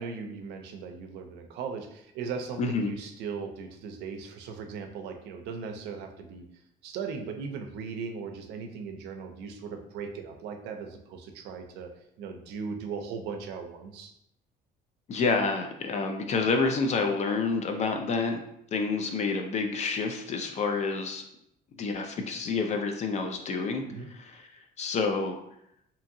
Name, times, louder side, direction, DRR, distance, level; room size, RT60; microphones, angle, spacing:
voice 1, 0.0-6.5 6.8-11.9 12.2-14.1 23.9-24.1, right 5 dB, 85° right, 5 dB, 0.4 m, -38 dB
voice 2, 2.6-2.9 15.1-18.4 18.7-21.2 21.8-25.4, left 4 dB, 45° left, 5 dB, 0.4 m, -28 dB
2.8 x 2.6 x 2.6 m, 0.75 s
cardioid pair, 110°, 17 cm